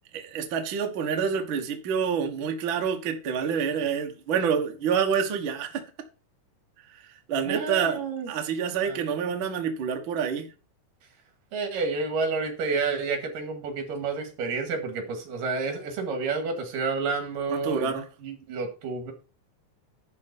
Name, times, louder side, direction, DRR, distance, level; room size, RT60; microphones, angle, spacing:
voice 1, 0.1-5.8 7.3-8.0 8.3-10.5 17.5-18.0, right 7 dB, 50° right, 1.6 m, -27 dB
voice 2, 7.5-8.3 8.9-9.0 11.5-19.1, right 4 dB, 80° right, 3.7 m, -30 dB
11.0 x 4.0 x 7.0 m
omnidirectional pair, 3.9 m